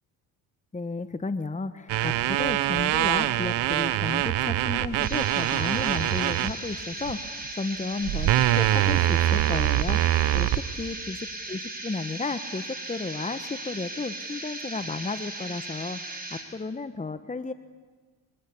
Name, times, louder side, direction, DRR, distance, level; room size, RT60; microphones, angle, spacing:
voice 1, 0.7-17.5, left 3 dB, 15° left, 11 dB, 1.3 m, -33 dB
sound 1, 1.9-6.5 7.1-7.3 8.0-10.6, right 14 dB, 70° right, 1.2 m, -24 dB
sound 2, 5.0-16.4, right 2 dB, 20° right, 6.0 m, -37 dB
25.0 x 23.5 x 8.5 m, 1.4 s
supercardioid pair, 70°, 44 cm